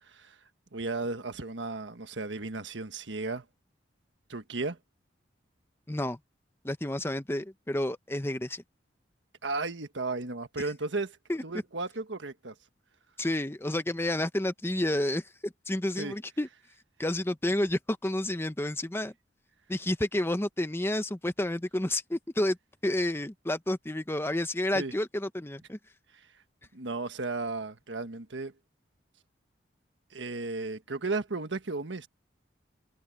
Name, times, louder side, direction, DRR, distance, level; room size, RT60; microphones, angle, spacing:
voice 1, 0.7-3.4 4.3-4.8 9.4-11.2 11.4-12.5 16.0-16.1 24.7-24.9 26.7-28.5 30.1-32.1, right 3 dB, 75° right, 1.5 m, -34 dB
voice 2, 5.9-6.2 6.6-8.6 11.3-11.4 13.2-16.5 17.0-19.1 19.7-22.6 22.8-25.8, left 1 dB, 15° left, 0.9 m, -30 dB
head